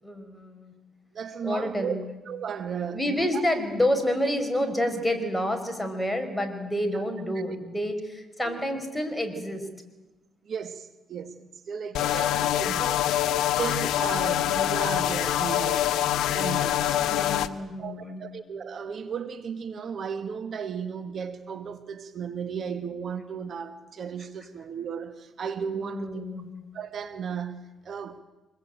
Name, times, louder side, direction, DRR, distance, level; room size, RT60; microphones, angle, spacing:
voice 1, 0.0-0.7 1.4-2.0 2.9-9.7 16.9-18.3 25.7-26.5, left 1 dB, 5° left, 5.0 m, -29 dB
voice 2, 1.1-1.9 2.3-3.4 6.9-7.0 8.4-8.6 10.4-15.9 16.3-17.0 17.8-26.2 26.7-28.2, right 7 dB, 55° right, 1.5 m, -35 dB
sound 1, 11.9-17.5, left 12 dB, 85° left, 1.1 m, -25 dB
26.0 x 21.5 x 9.1 m
cardioid pair, 90°, 0 cm